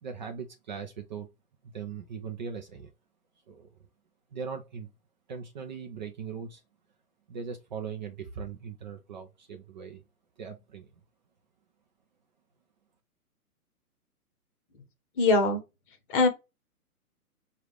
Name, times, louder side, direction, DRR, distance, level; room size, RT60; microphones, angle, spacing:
voice 1, 0.0-1.3 1.6-2.9 3.5-3.7 4.3-4.9 5.3-6.6 7.3-10.0 10.4-10.9, right 6 dB, 30° right, 0.5 m, -39 dB
voice 2, 15.2-15.6 16.1-16.3, left 3 dB, 35° left, 1.3 m, -22 dB
4.9 x 2.5 x 3.2 m
hypercardioid pair, 130°, 45 cm